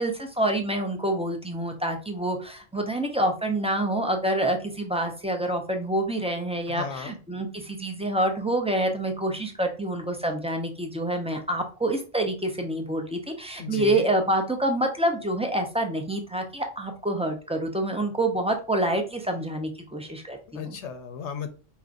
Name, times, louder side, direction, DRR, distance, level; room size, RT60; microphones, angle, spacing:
voice 1, 0.0-20.8, right 1 dB, 10° right, 3 dB, 0.4 m, -27 dB
voice 2, 6.7-7.1 13.6-14.0 20.5-21.5, left 6 dB, 75° left, 8 dB, 0.9 m, -35 dB
4.9 x 3.0 x 2.4 m, 0.37 s
omnidirectional pair, 1.2 m